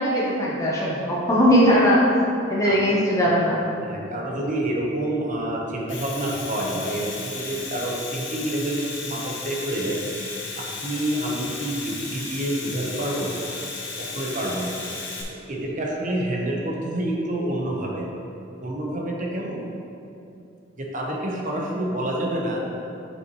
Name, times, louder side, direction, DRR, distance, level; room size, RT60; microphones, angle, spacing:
voice 1, 0.0-2.0 2.5-3.7, equal, 15° left, -6 dB, 0.7 m, -19 dB
voice 2, 3.8-10.0 10.6-13.3 14.0-14.7 15.5-18.1 18.6-19.6 20.8-22.6, right 1 dB, 40° right, -1 dB, 1.0 m, -28 dB
Domestic sounds home sounds, 5.7-15.2, left 3 dB, 65° left, 1.1 m, -34 dB
7.8 x 5.6 x 3.1 m, 2.7 s
head